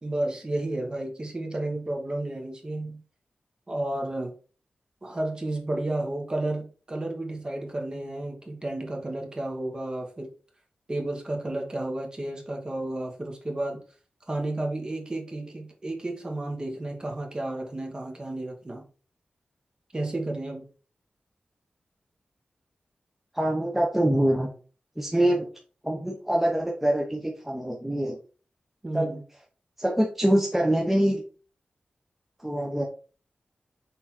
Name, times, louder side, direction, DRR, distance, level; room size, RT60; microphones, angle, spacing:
voice 1, 0.0-3.0 3.7-4.3 5.0-10.3 10.9-13.8 14.3-18.9 19.9-20.7 28.8-29.2, right 1 dB, 30° right, 1.5 m, -32 dB
voice 2, 23.3-24.5 25.0-25.5 25.8-28.2 28.9-29.1 29.8-31.2 32.4-32.8, right 1 dB, 10° right, 1.0 m, -24 dB
6.1 x 3.9 x 4.3 m
wide cardioid pair, 115°, 3 cm